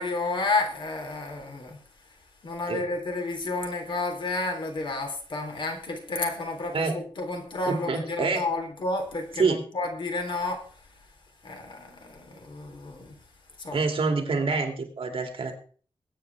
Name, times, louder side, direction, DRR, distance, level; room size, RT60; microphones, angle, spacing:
voice 1, 0.0-1.8 2.4-10.7 11.4-13.2 13.6-13.9, left 3 dB, 55° left, 4 dB, 3.6 m, -31 dB
voice 2, 7.7-8.4 9.4-9.6 13.7-15.5, right 4 dB, 65° right, 4 dB, 2.6 m, -26 dB
22.0 x 9.3 x 3.5 m, 0.42 s
wide cardioid pair, 140°, 10 cm